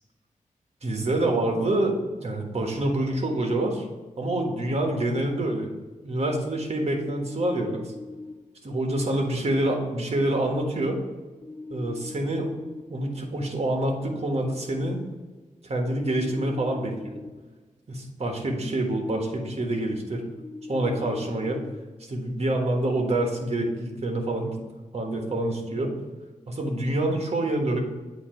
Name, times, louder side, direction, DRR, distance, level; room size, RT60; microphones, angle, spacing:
voice 1, 0.8-3.8 4.2-5.7 6.0-7.9 8.6-11.0 11.7-12.5 12.9-15.0 15.6-17.2 17.9-20.2 20.7-21.6 22.1-24.6 24.9-25.9 26.5-27.8, right 1 dB, 50° right, 2 dB, 1.5 m, -26 dB
sound 1, 7.0-8.3 11.4-12.8 15.9-17.3 20.4-21.8, left 3 dB, 50° left, 1.3 m, -40 dB
8.4 x 2.9 x 5.7 m, 1.3 s
wide cardioid pair, 75°, 13 cm